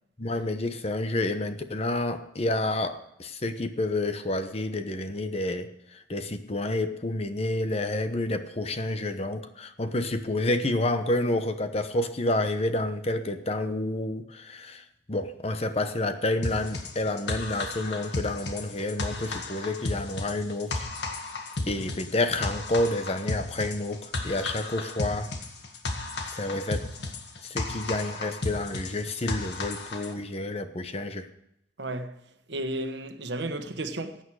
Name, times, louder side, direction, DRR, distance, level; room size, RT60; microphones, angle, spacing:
voice 1, 0.2-20.9 21.7-25.3 26.3-26.9 27.4-31.3, left 2 dB, 35° left, 0.9 m, -29 dB
sound 1, 16.4-30.1, left 2 dB, 70° left, 1.8 m, -34 dB
voice 2, 31.8-32.2 32.5-34.2, right 1 dB, 75° right, 1.3 m, -33 dB
15.5 x 9.2 x 4.8 m
head